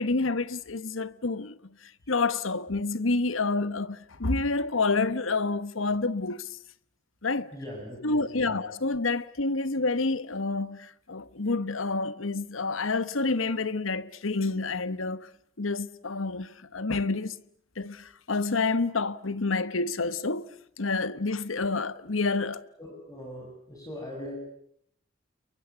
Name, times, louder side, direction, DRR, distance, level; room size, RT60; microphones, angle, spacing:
voice 1, 0.0-6.6 7.2-7.5 8.0-15.3 15.6-17.4 17.8-20.5 20.8-22.6, left 3 dB, 85° left, 1.2 m, -28 dB
voice 2, 7.5-8.6 22.8-24.4, left 1 dB, 15° left, 6.7 m, -41 dB
29.5 x 23.0 x 8.2 m
head